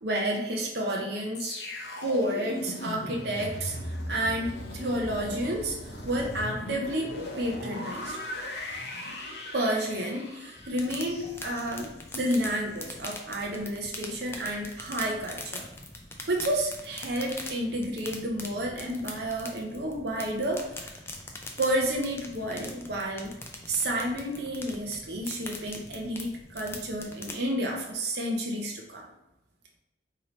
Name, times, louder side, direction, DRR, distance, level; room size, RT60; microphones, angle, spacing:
voice 1, 0.0-1.6 2.0-8.2 9.5-15.6 16.3-20.9 21.6-23.3 23.7-29.1, right 1 dB, 60° right, 0 dB, 0.6 m, -30 dB
sound 1, 1.3-12.4 12.8-13.0, left 1 dB, 60° left, 0.7 m, -38 dB
sound 2, 10.6-27.4, left 2 dB, 15° left, 0.3 m, -43 dB
3.1 x 2.8 x 3.9 m, 0.93 s
head